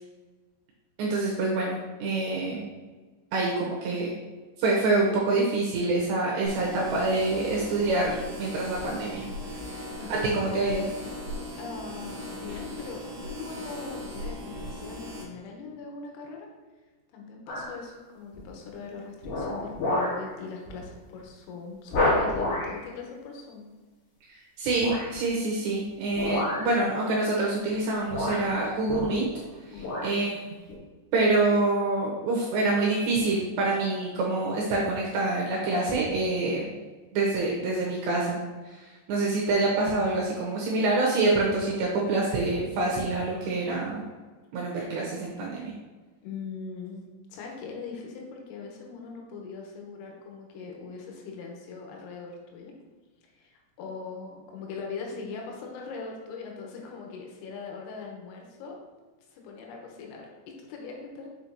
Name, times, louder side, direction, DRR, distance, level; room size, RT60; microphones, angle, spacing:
voice 1, 1.0-2.6 3.3-4.1 4.6-9.3 9.8-10.8 24.6-29.3 29.7-30.3 31.1-36.6 37.1-38.4 38.7-44.0 44.5-45.7, right 2 dB, 80° right, -3 dB, 2.6 m, -26 dB
sound 1, 6.5-15.2, left 1 dB, 65° right, 2.2 m, -38 dB
voice 2, 9.7-10.9 11.6-16.5 17.1-23.7 29.7-30.0 46.2-47.1 47.3-52.7 53.2-58.8 59.3-61.3, left 4 dB, 90° left, 0 dB, 3.7 m, -41 dB
sound 2, 17.5-17.8 18.3-18.7 19.2-20.3 20.7-20.8 21.2-21.3 21.9-22.8 24.7-25.2 26.1-26.8 27.7-27.8 28.1-29.4 29.7-30.2 30.7-30.8, left 1 dB, 65° left, 2.1 m, -29 dB
6.9 x 6.1 x 2.7 m, 1.3 s
omnidirectional pair, 5.9 m